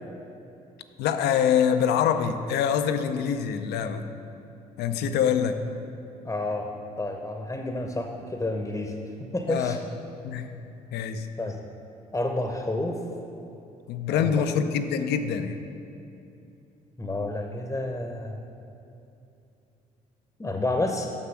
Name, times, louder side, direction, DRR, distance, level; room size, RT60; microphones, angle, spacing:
voice 1, 1.0-4.0 4.8-5.6 9.5-9.8 10.2-10.6 10.9-11.3 13.9-15.6, left 8 dB, 60° left, 9 dB, 0.6 m, -25 dB
voice 2, 4.9-5.3 6.2-6.7 7.0-8.9 9.2-9.8 11.4-11.6 12.1-13.0 14.1-14.4 17.0-18.4 20.4-21.1, left 2 dB, 15° left, 3 dB, 0.9 m, -30 dB
7.2 x 6.4 x 6.0 m, 2.7 s
figure-of-eight pair, 45°, 19 cm